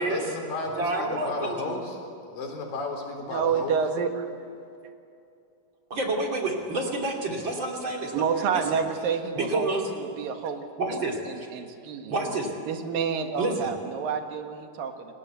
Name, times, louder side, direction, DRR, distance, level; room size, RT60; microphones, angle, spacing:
voice 1, 0.0-2.0 2.3-3.7, left 2 dB, 75° left, 2 dB, 5.7 m, -33 dB
voice 2, 0.8-1.7 5.9-8.1 8.5-8.6 9.4-9.8 10.8-11.5 12.1-12.5 13.4-13.7, right 2 dB, 35° right, 1 dB, 3.2 m, -28 dB
voice 3, 3.2-4.5 8.1-10.7 10.9-12.2 12.7-15.1, right 6 dB, 80° right, 5 dB, 3.4 m, -29 dB
29.5 x 20.0 x 8.1 m, 2.6 s
omnidirectional pair, 4.0 m